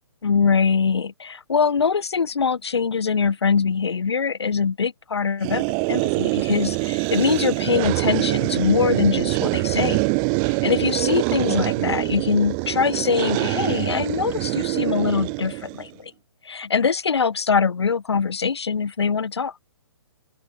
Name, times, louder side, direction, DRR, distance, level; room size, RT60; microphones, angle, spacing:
voice 1, 0.2-5.6 5.9-10.0 10.4-16.1 16.4-19.5, left 5 dB, 70° left, 1.7 m, -23 dB
sound 1, 5.4-15.9, right 40 dB or more, 25° right, 1.8 m, -24 dB
open air
figure-of-eight pair, 130°, 14 cm